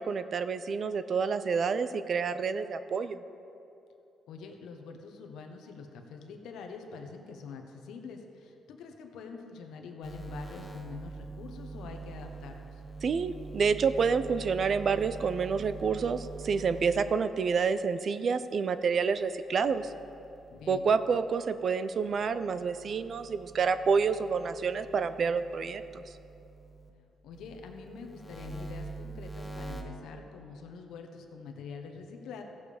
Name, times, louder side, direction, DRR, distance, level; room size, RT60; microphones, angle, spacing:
voice 1, 0.0-3.2 13.0-19.9 20.7-26.0, right 5 dB, 50° right, 12 dB, 0.5 m, -28 dB
voice 2, 4.3-12.8 20.5-20.9 27.2-32.4, left 5 dB, 80° left, 4 dB, 1.1 m, -45 dB
sound 1, 10.0-17.5 19.5-21.6 22.1-26.9 27.3-29.8, right 3 dB, 15° left, 1.3 m, -45 dB
15.5 x 7.1 x 5.0 m, 2.8 s
cardioid pair, 90°, 0 cm